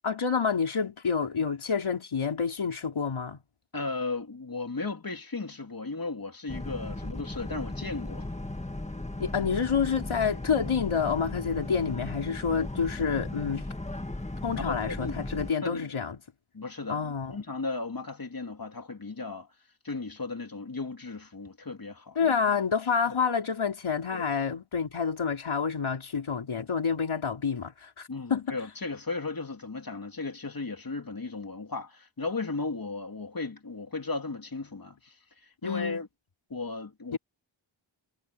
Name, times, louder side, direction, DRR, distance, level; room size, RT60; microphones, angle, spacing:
voice 1, 0.0-3.4 9.2-13.6 14.4-16.2 16.9-17.4 22.2-28.6 35.6-36.0 37.1-37.2, left 6 dB, 85° left, 4.2 m, -28 dB
voice 2, 3.7-8.3 14.6-15.2 15.6-15.9 16.5-19.5 19.8-22.3 23.1-23.2 24.1-24.2 28.1-36.1 36.5-37.2, left 3 dB, 45° left, 3.3 m, -36 dB
Boat Water vehicle, 6.5-15.5, left 2 dB, 15° left, 1.8 m, -37 dB
wide cardioid pair, 80°, 47 cm